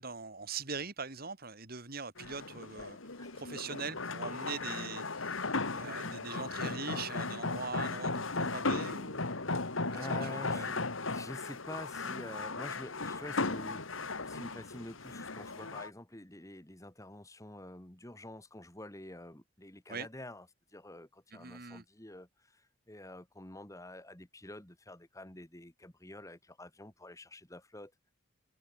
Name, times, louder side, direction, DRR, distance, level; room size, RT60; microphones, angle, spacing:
voice 1, 0.0-3.0 3.3-5.4 5.7-9.2 10.0-10.8 19.9-20.1 21.3-21.8, right 4 dB, 45° right, 3.0 m, -42 dB
sound 1, 2.2-15.9, left 3 dB, 75° left, 2.5 m, -36 dB
voice 2, 9.8-20.5 20.7-27.9, left 1 dB, 15° left, 2.2 m, -48 dB
head